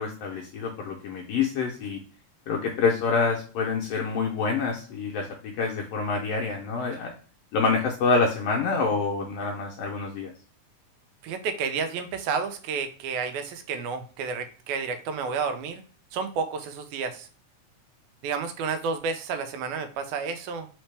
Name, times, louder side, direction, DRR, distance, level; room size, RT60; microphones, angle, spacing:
voice 1, 0.0-2.0 2.5-7.1 7.5-10.3, left 4 dB, 85° left, 0 dB, 1.4 m, -27 dB
voice 2, 11.2-15.8 16.1-17.3 18.2-20.7, right 5 dB, 85° right, 7 dB, 2.0 m, -31 dB
4.2 x 3.6 x 3.3 m, 0.40 s
omnidirectional pair, 3.4 m